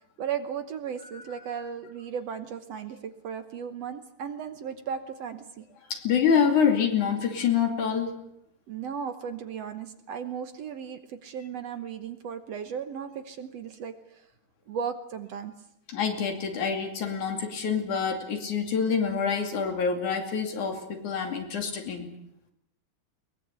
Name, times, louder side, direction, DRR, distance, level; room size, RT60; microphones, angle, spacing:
voice 1, 0.2-5.7 8.7-14.3 14.7-15.5, right 7 dB, 65° right, 9 dB, 1.9 m, -36 dB
voice 2, 5.9-8.2 15.9-22.1, left 6 dB, 70° left, 5 dB, 4.1 m, -26 dB
22.0 x 21.0 x 8.2 m, 0.80 s
omnidirectional pair, 3.7 m